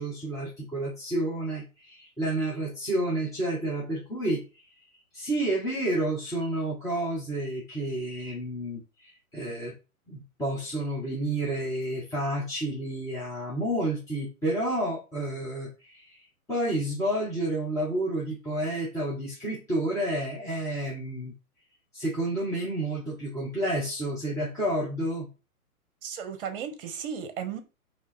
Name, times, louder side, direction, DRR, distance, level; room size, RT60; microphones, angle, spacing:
voice 1, 0.0-4.6 5.1-9.7 10.1-16.2 16.5-21.3 21.9-25.3, right 1 dB, 5° left, 1.0 m, -30 dB
voice 2, 26.0-27.6, right 7 dB, 40° right, 1.0 m, -35 dB
3.8 x 3.0 x 4.3 m
figure-of-eight pair, 125°, 44 cm